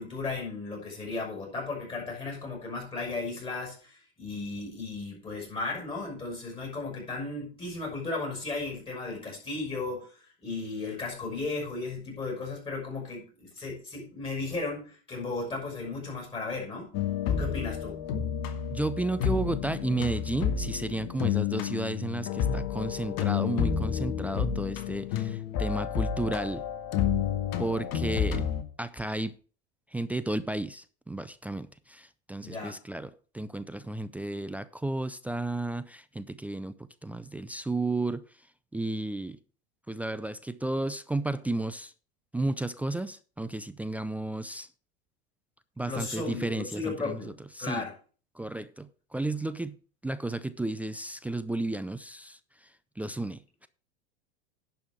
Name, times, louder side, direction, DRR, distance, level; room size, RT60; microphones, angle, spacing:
voice 1, 0.0-16.9 17.3-18.0 32.4-32.8 45.8-47.3 47.6-47.9, left 3 dB, 15° left, 5.7 m, -35 dB
sound 1, 16.9-28.6, left 8 dB, 50° left, 1.8 m, -30 dB
voice 2, 18.7-26.6 27.6-28.4 28.8-29.3 29.9-36.8 37.0-38.2 38.7-39.4 39.9-41.9 42.3-44.7 45.8-47.2 47.5-47.8 48.4-49.8 50.0-52.4 53.0-53.7, right 2 dB, 5° right, 0.4 m, -33 dB
11.0 x 5.6 x 6.2 m
hypercardioid pair, 115°, 32 cm